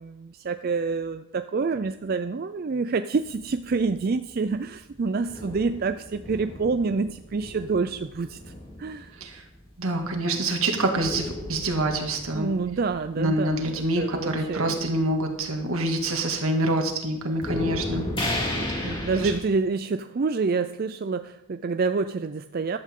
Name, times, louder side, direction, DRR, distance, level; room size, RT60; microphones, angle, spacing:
voice 1, 0.0-8.5 8.8-9.2 12.3-14.7 18.6-22.8, right 4 dB, 45° right, 9 dB, 0.4 m, -27 dB
sound 1, 3.2-10.2 11.0-16.8 17.1-19.4, left 1 dB, 25° left, 3.9 m, -36 dB
voice 2, 9.8-12.5 13.2-18.1 18.4-19.3, right 1 dB, 80° right, 3 dB, 2.1 m, -26 dB
14.0 x 11.5 x 3.7 m, 0.86 s
head